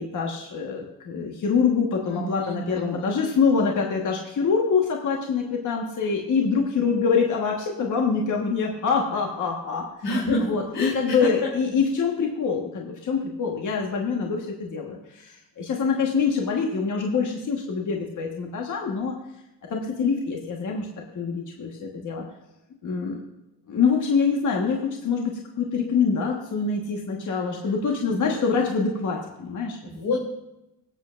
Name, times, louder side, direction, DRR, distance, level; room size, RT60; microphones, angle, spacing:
voice 1, 0.0-9.9 10.5-19.2 19.7-20.9 21.1-22.2 22.8-23.2 23.7-29.8, left 5 dB, 45° left, 0 dB, 1.4 m, -25 dB
voice 2, 2.1-3.1 10.0-11.5 27.3-27.7 28.1-28.4 29.8-30.3, left 2 dB, 70° left, -4 dB, 2.8 m, -29 dB
22.0 x 7.8 x 2.5 m, 0.91 s
cardioid pair, 120°, 41 cm